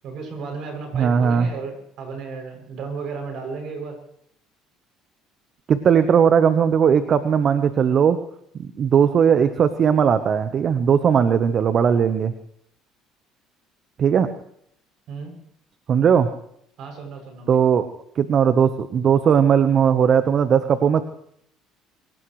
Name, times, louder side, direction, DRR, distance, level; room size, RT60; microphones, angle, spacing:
voice 1, 0.0-4.0 15.1-15.3 16.8-17.6, right 4 dB, 65° right, 3 dB, 7.5 m, -34 dB
voice 2, 0.9-1.5 5.7-8.2 8.8-12.3 14.0-14.3 15.9-16.3 17.5-17.9 18.2-21.0, right 7 dB, 45° right, 10 dB, 1.1 m, -18 dB
25.5 x 17.5 x 3.3 m, 0.69 s
supercardioid pair, 95°, 0 cm